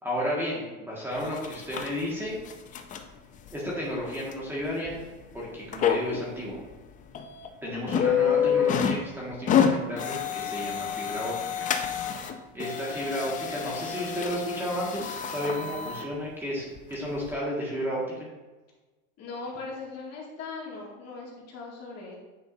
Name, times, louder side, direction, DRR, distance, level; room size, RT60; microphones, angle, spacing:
voice 1, 0.0-2.3 3.5-4.9 5.3-6.6 7.6-11.9 12.5-18.3, equal, 5° right, -6 dB, 1.8 m, -33 dB
sound 1, 1.2-1.9 2.4-3.0 3.5-3.6 4.3-4.4 4.9-5.0 5.7-6.2 6.7-6.8 7.1-7.5 7.9-9.0 9.3-12.3 12.6-16.1 16.8-16.9 17.3-17.4, left 8 dB, 20° left, 0.5 m, -28 dB
voice 2, 7.6-8.1 19.2-22.2, left 3 dB, 40° left, -4 dB, 2.3 m, -40 dB
9.3 x 5.2 x 2.7 m, 1.2 s
supercardioid pair, 130°, 38 cm